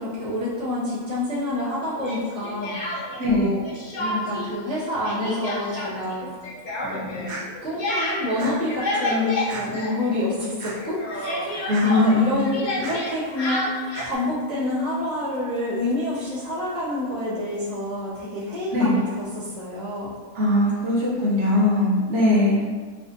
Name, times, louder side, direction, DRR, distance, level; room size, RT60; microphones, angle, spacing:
voice 1, 0.0-2.8 3.3-3.6 4.0-6.3 6.8-7.3 7.6-20.1 22.3-22.4, left 1 dB, 15° left, -10 dB, 0.5 m, -28 dB
Speech, 2.0-3.3 3.6-4.5 4.8-10.5 10.7-14.1, left 1 dB, 75° left, 0.4 m, -30 dB
voice 2, 3.2-3.5 11.7-12.5 18.7-19.0 20.3-22.6, left 2 dB, 55° right, -6 dB, 0.9 m, -20 dB
sound 1, 7.3-7.4 8.4-8.5 9.5-9.6 10.6-10.7 11.7-11.9 12.8-13.0 13.9-14.1, right 3 dB, 80° right, 1.2 m, -34 dB
4.4 x 2.5 x 2.6 m, 1.5 s
omnidirectional pair, 1.6 m